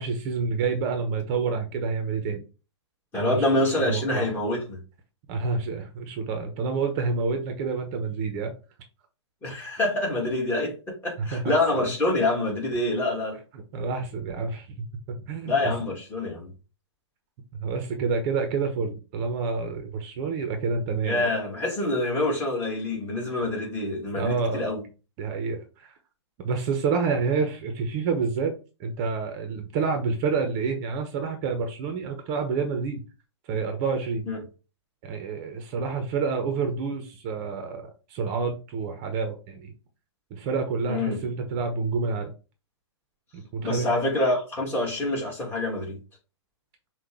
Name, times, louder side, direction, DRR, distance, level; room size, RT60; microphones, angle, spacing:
voice 1, 0.0-2.4 3.1-3.5 3.9-4.3 5.3-8.5 11.2-11.4 13.7-15.7 17.6-21.3 24.2-24.6 25.2-26.0 26.4-28.5 28.8-33.0 33.5-34.2 35.0-39.7 40.3-42.3 43.3-44.0, right 5 dB, 35° right, 0.9 m, -28 dB
voice 2, 3.1-4.8 9.4-13.4 15.4-16.5 21.0-24.8 34.3-34.4 40.9-41.2 43.6-46.0, left 2 dB, 15° left, 2.0 m, -26 dB
5.8 x 2.5 x 3.7 m
hypercardioid pair, 130°, 15 cm